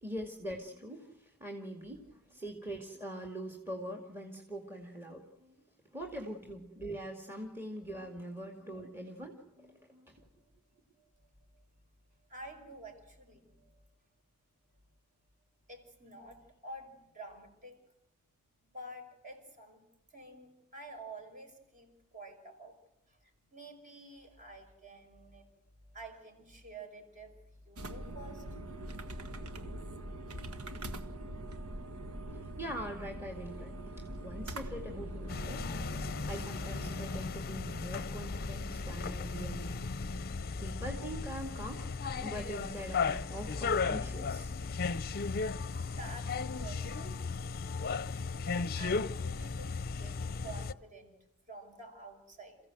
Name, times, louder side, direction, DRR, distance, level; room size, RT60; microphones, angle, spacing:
voice 1, 0.0-5.5 5.9-10.1 32.3-35.6 36.2-39.9 40.6-41.9 42.2-44.5, equal, 10° right, 3 dB, 2.2 m, -43 dB
voice 2, 12.3-13.7 15.7-17.8 18.6-19.8 20.1-22.8 23.1-23.2 23.5-25.5 25.9-28.4 45.8-47.3 48.3-51.1 51.5-52.6, right 2 dB, 35° right, 4 dB, 5.6 m, -50 dB
sound 1, 27.8-37.3, right 1 dB, 75° right, 1.7 m, -43 dB
sound 2, 35.3-50.7, left 4 dB, 45° left, 0.7 m, -36 dB
28.5 x 15.5 x 7.8 m, 0.91 s
head